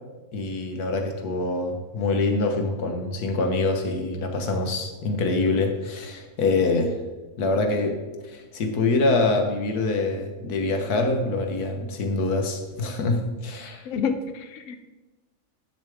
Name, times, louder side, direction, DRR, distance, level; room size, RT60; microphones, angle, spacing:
voice 1, 0.3-7.0 7.4-13.9, left 3 dB, 90° left, 4 dB, 1.6 m, -25 dB
voice 2, 13.9-14.9, left 6 dB, 60° left, 8 dB, 1.0 m, -29 dB
11.0 x 6.7 x 3.5 m, 1.2 s
omnidirectional pair, 1.6 m